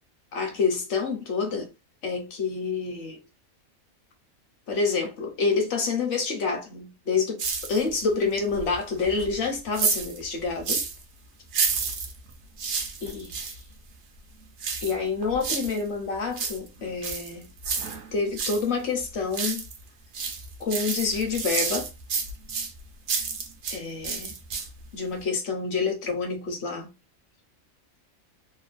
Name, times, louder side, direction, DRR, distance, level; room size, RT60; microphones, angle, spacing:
voice 1, 0.3-1.7 2.0-3.2 4.7-7.4 7.7-10.8 13.0-13.4 14.8-17.5 18.1-19.6 20.6-21.9 23.7-24.4 24.9-26.9, left 4 dB, 60° left, 1.0 m, -28 dB
sound 1, 7.4-8.1 8.5-11.0 11.5-13.6 14.6-15.8 16.2-18.6 19.0-19.8 20.1-23.8 24.0-24.9 25.2-25.3, right 5 dB, 60° right, 0.9 m, -30 dB
3.0 x 2.2 x 2.4 m
omnidirectional pair, 1.4 m